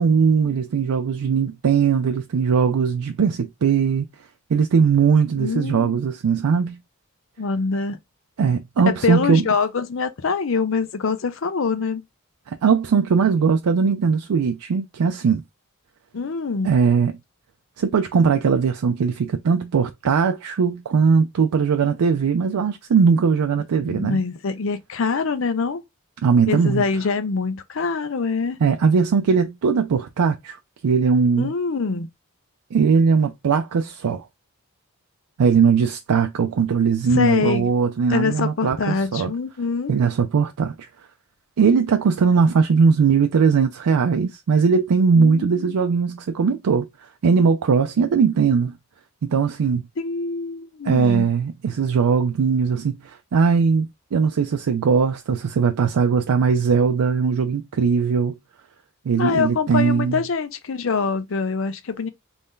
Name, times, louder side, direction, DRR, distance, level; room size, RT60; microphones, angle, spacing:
voice 1, 0.0-4.1 4.5-6.8 8.4-9.4 12.5-15.4 16.6-17.2 17.8-24.2 26.2-26.8 28.6-30.6 30.8-31.5 32.7-34.2 35.4-39.3 39.9-40.7 41.6-48.8 49.2-49.9 50.8-58.3 59.1-60.2, right 5 dB, 90° right, 0.4 m, -19 dB
voice 2, 5.4-5.9 7.4-8.0 8.9-12.0 16.1-16.7 23.8-25.8 26.5-28.6 31.4-32.1 37.1-37.7 38.1-39.9 45.2-45.8 50.0-51.3 59.2-62.1, left 4 dB, 60° left, 0.5 m, -24 dB
3.2 x 2.6 x 3.6 m
head